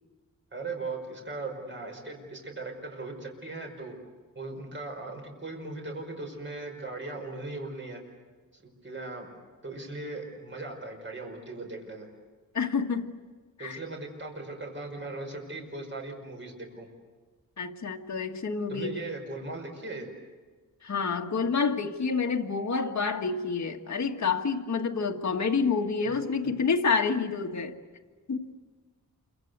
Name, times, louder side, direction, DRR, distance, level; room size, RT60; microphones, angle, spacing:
voice 1, 0.5-3.9 4.4-8.0 8.5-9.3 9.6-12.1 13.6-16.9 18.7-20.1 26.0-26.1, right 2 dB, 35° right, 2 dB, 5.2 m, -38 dB
voice 2, 12.5-13.2 13.6-13.8 17.6-19.1 20.8-27.8 28.3-28.5, left 5 dB, 50° left, 2 dB, 1.7 m, -28 dB
28.0 x 24.5 x 8.1 m, 1.4 s
wide cardioid pair, 145°, 35 cm